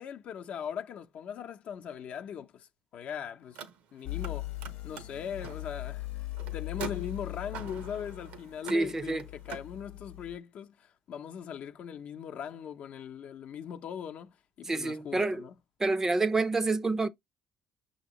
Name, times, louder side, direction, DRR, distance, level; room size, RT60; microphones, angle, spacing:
voice 1, 0.0-2.7 2.9-3.6 3.9-4.5 4.8-6.1 6.5-15.5, left 8 dB, 60° left, 0.6 m, -40 dB
Car, 3.4-4.3 4.6-9.7, right 7 dB, 80° right, 0.9 m, -45 dB
sound 1, 4.0-10.4, left 18 dB, 90° left, 0.8 m, -40 dB
voice 2, 8.7-9.3 14.6-15.4 15.8-17.1, right 3 dB, 20° right, 0.5 m, -28 dB
6.1 x 2.9 x 2.9 m
cardioid pair, 115°, 3 cm